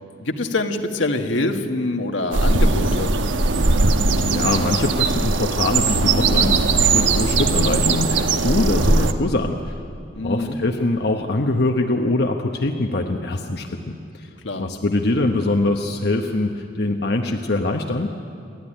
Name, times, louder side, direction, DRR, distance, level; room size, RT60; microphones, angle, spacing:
voice 1, 0.2-3.1 10.1-10.6 14.4-14.7, left 2 dB, 80° left, 4 dB, 1.6 m, -24 dB
sound 1, 2.3-9.1, right 3 dB, 85° right, 1.1 m, -19 dB
voice 2, 4.2-9.8 10.2-14.3 14.6-18.1, left 2 dB, 60° left, 3 dB, 1.0 m, -23 dB
28.5 x 12.0 x 10.0 m, 2.4 s
head